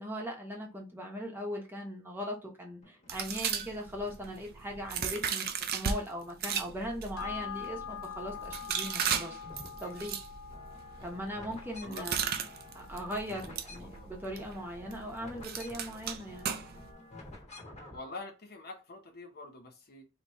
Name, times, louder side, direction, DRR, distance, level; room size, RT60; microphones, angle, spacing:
voice 1, 0.0-5.5 5.7-9.4 9.8-10.2 11.0-12.2 12.7-16.5, equal, 10° right, 1.0 m, -39 dB
sound 1, 2.8-4.3 4.7-6.3 6.7-8.0 8.2-18.2, left 2 dB, 35° left, 1.3 m, -53 dB
sound 2, 3.1-6.0 6.4-16.9, right 7 dB, 50° right, 0.5 m, -37 dB
sound 3, 7.2-15.9 16.3-16.4, left 8 dB, 85° left, 0.8 m, -46 dB
voice 2, 17.9-20.1, left 3 dB, 50° left, 0.8 m, -45 dB
4.1 x 2.9 x 3.2 m
head